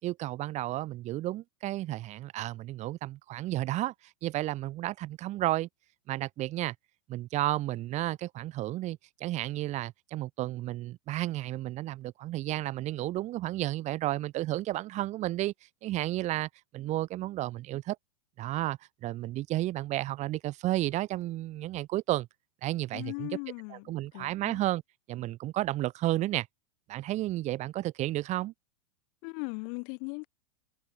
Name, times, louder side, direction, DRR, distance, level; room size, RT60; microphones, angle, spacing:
voice 1, 0.0-3.9 4.2-5.7 6.1-6.7 7.1-15.5 15.8-18.0 18.4-22.3 22.6-23.3 23.7-24.8 25.1-26.5 26.9-28.5, right 16 dB, 40° right, 6.4 m, -32 dB
voice 2, 22.9-24.6 29.2-30.3, left 40 dB or more, 45° left, 3.5 m, -39 dB
figure-of-eight pair, 95°, 19 cm